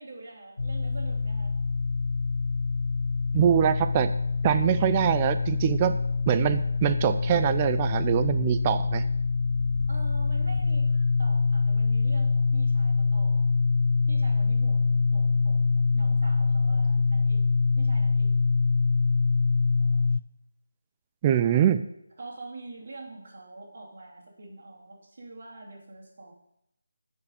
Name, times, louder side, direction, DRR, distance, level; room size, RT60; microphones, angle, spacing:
voice 1, 0.0-1.6 9.9-13.5 14.1-17.5 17.8-18.4 21.4-21.6 22.2-26.3, right 3 dB, 50° right, -4 dB, 2.8 m, -44 dB
sound 1, 0.6-20.2, left 4 dB, 65° left, 0.4 m, -25 dB
voice 2, 3.3-4.1 4.4-5.9 6.3-9.0 21.2-21.8, right 10 dB, 25° right, 11 dB, 0.4 m, -23 dB
9.4 x 4.8 x 4.9 m, 0.80 s
figure-of-eight pair, 155°, 0 cm